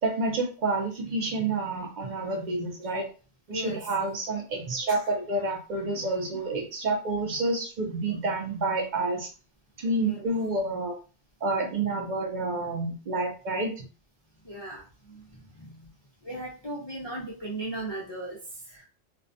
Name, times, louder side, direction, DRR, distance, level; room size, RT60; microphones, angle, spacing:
voice 1, 0.0-3.0 3.5-9.3 9.8-10.9 11.4-13.9, right 2 dB, 55° right, 2 dB, 0.5 m, -29 dB
voice 2, 3.5-4.0 4.9-5.0 10.0-10.3 14.4-15.9 16.2-18.4 18.6-18.8, right 1 dB, 45° left, -4 dB, 0.3 m, -38 dB
2.3 x 2.1 x 2.6 m, 0.35 s
omnidirectional pair, 1.2 m